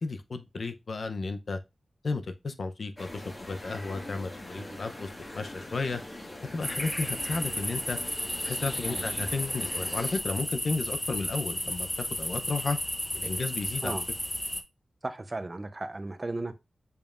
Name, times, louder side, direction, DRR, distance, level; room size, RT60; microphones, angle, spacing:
voice 1, 0.0-1.6 2.0-6.0 6.5-8.0 8.4-12.8 13.1-14.0, left 3 dB, 70° left, 0.7 m, -33 dB
sound 1, 3.0-10.2, left 1 dB, 30° left, 1.7 m, -42 dB
sound 2, 6.6-14.6, left 1 dB, 15° left, 0.7 m, -33 dB
voice 2, 15.0-16.5, right 2 dB, 30° right, 0.7 m, -35 dB
7.1 x 5.4 x 2.5 m
wide cardioid pair, 100°, 0 cm